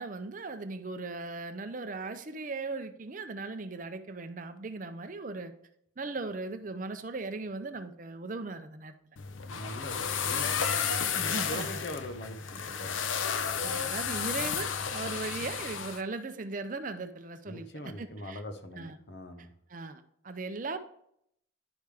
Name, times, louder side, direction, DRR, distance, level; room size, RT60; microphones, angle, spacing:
voice 1, 0.0-5.5 6.0-8.9 11.1-11.7 13.6-18.4 18.7-19.0 19.4-20.8, right 3 dB, 40° right, 9 dB, 0.5 m, -38 dB
sound 1, 9.2-16.0, left 7 dB, 85° left, 0.6 m, -32 dB
voice 2, 9.5-12.9 17.5-19.5, left 1 dB, 60° left, 7 dB, 0.9 m, -42 dB
10.5 x 5.0 x 3.4 m, 0.72 s
head